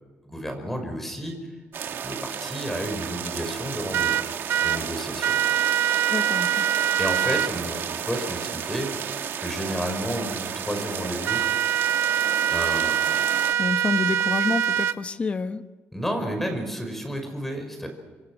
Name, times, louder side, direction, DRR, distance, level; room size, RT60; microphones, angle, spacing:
voice 1, 0.2-1.3 2.0-4.2 4.6-5.3 7.0-9.1 9.4-11.4 12.5-13.1 15.9-17.9, equal, 5° left, 5 dB, 5.4 m, -31 dB
sound 1, 1.7-13.5, right 8 dB, 60° right, 1.9 m, -33 dB
sound 2, 3.9-4.8 5.2-7.5 11.3-14.9, right 10 dB, 80° right, 0.9 m, -23 dB
voice 2, 6.1-6.7 13.6-15.6, left 4 dB, 30° left, 9 dB, 1.2 m, -28 dB
26.5 x 26.0 x 6.3 m, 1.3 s
wide cardioid pair, 165°, 4 cm